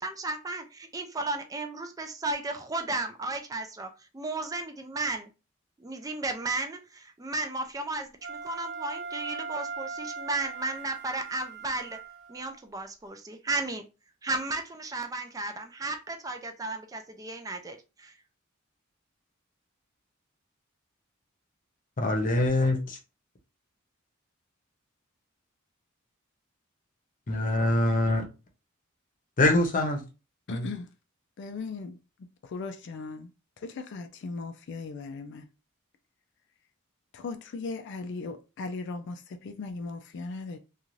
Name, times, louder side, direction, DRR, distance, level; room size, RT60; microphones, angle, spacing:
voice 1, 0.0-5.3 5.8-12.0 12.3-13.8 14.2-18.1, right 2 dB, 15° right, 0.3 m, -34 dB
Wind instrument woodwind instrument, 8.2-12.5, right 5 dB, 55° right, 0.9 m, -39 dB
voice 2, 22.0-23.0 27.3-28.2 29.4-30.0 30.5-30.7, left 1 dB, 40° left, 0.7 m, -24 dB
voice 3, 30.5-30.9 31.4-32.0 32.4-33.3 33.6-35.5 37.1-40.6, left 3 dB, 60° left, 0.4 m, -38 dB
2.5 x 2.3 x 3.0 m
head